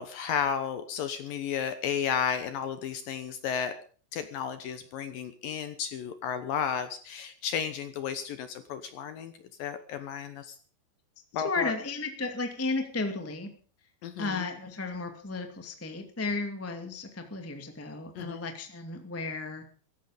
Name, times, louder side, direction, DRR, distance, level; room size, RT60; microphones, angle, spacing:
voice 1, 0.0-3.7 4.1-9.3 9.6-10.6 11.3-11.7 14.0-14.5 18.2-18.4, left 8 dB, 70° left, 10 dB, 2.3 m, -33 dB
voice 2, 11.4-13.5 14.2-19.7, left 3 dB, 10° left, 5 dB, 0.7 m, -34 dB
17.0 x 15.0 x 5.1 m, 0.42 s
omnidirectional pair, 5.0 m